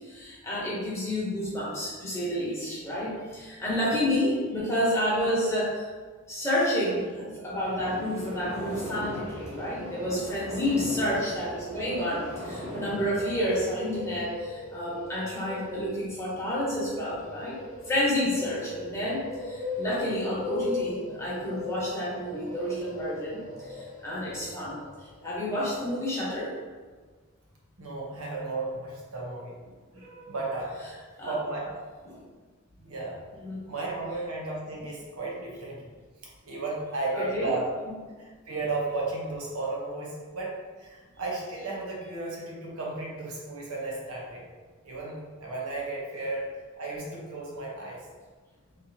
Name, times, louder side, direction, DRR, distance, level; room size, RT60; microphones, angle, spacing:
voice 1, 0.0-5.9 6.3-17.6 17.9-24.8 25.2-26.6 29.9-30.0 31.2-31.3 32.0-32.2 33.3-33.6 37.1-37.5, equal, 15° left, -8 dB, 1.1 m, -30 dB
sound 1, 7.6-14.0, equal, 25° right, 0.9 m, -39 dB
sound 2, 8.4-25.3, left 4 dB, 35° left, 0.7 m, -40 dB
voice 2, 27.8-29.6 29.9-30.9 31.2-31.8 32.8-33.2 33.7-35.8 36.2-37.7 38.2-44.4 44.8-46.5 46.8-48.1, right 2 dB, 85° right, -3 dB, 1.0 m, -34 dB
3.3 x 2.8 x 4.0 m, 1.4 s
head